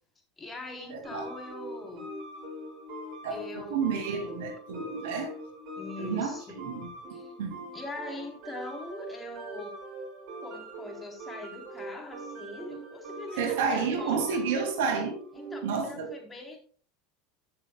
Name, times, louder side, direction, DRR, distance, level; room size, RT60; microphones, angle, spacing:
voice 1, 0.4-2.1 3.3-4.4 5.7-6.6 7.1-7.3 7.7-9.8 10.4-14.4 15.3-16.6, left 2 dB, 20° left, 3.7 m, -42 dB
voice 2, 0.9-1.3 3.2-5.3 6.0-6.9 7.4-7.6 13.4-15.2 15.6-16.1, right 5 dB, 75° right, 2.7 m, -30 dB
sound 1, 1.0-15.8, right 1 dB, 55° right, 5.3 m, -42 dB
16.0 x 6.9 x 2.3 m
hypercardioid pair, 90°, 0 cm